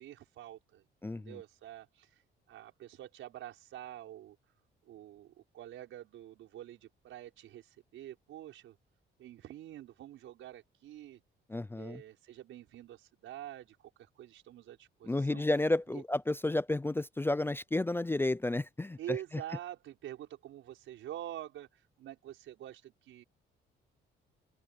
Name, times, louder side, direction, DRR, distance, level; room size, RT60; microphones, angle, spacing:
voice 1, 0.0-2.2 2.5-4.4 4.8-8.8 9.2-11.2 11.7-15.4 15.9-16.0 19.0-23.2, right 12 dB, 80° right, 5.9 m, -47 dB
voice 2, 1.0-1.4 11.5-12.0 15.1-19.2, left 2 dB, 10° left, 0.4 m, -31 dB
open air
cardioid pair, 90°, 20 cm